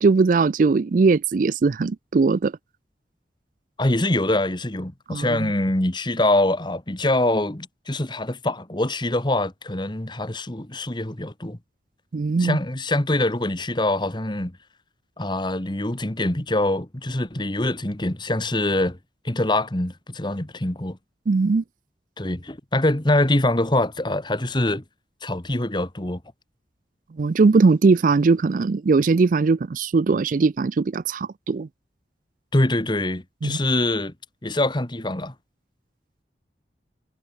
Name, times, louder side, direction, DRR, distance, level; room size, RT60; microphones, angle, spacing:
voice 1, 0.0-2.5 5.1-5.5 12.1-12.6 21.3-21.6 27.2-31.7 33.4-33.6, right 4 dB, 50° right, 0.4 m, -20 dB
voice 2, 3.8-11.6 12.4-14.5 15.2-19.0 19.2-21.0 22.2-24.8 25.2-26.2 32.5-34.1 34.4-35.3, left 1 dB, 25° left, 1.7 m, -24 dB
head